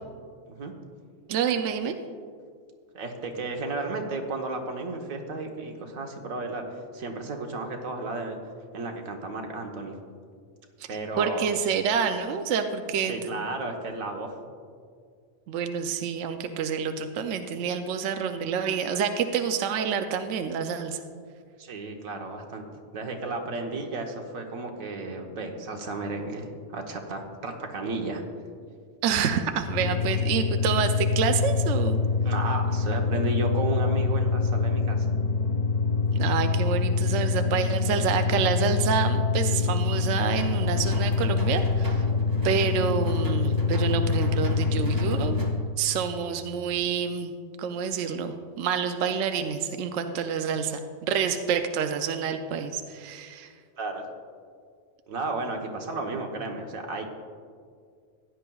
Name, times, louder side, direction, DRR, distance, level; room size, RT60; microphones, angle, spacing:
voice 1, 1.3-2.0 11.2-13.5 15.5-21.0 29.0-32.0 36.1-42.0 42.4-45.4 45.8-47.3 47.6-53.5, right 7 dB, 70° right, 7 dB, 0.9 m, -28 dB
voice 2, 2.9-8.4 8.7-10.0 10.9-11.5 13.0-14.4 21.6-22.6 22.9-28.2 32.2-35.2 53.8-54.0 55.1-57.1, right 3 dB, 85° right, 3 dB, 1.4 m, -33 dB
sound 1, 29.6-45.7, left 4 dB, 50° left, 0.5 m, -25 dB
sound 2, 40.4-45.5, equal, 15° right, 1.1 m, -41 dB
15.5 x 10.0 x 2.3 m, 2.1 s
omnidirectional pair, 1.4 m